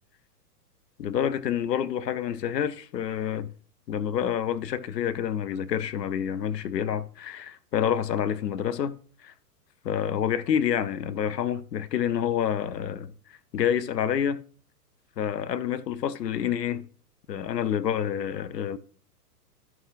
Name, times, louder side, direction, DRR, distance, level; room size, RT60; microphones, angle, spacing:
voice 1, 1.0-3.5 3.9-8.9 9.2-9.3 9.8-13.1 13.5-14.4 15.2-16.9 17.3-18.8, left 9 dB, 80° left, 0.7 m, -28 dB
12.5 x 5.8 x 2.5 m
hypercardioid pair, 115°, 48 cm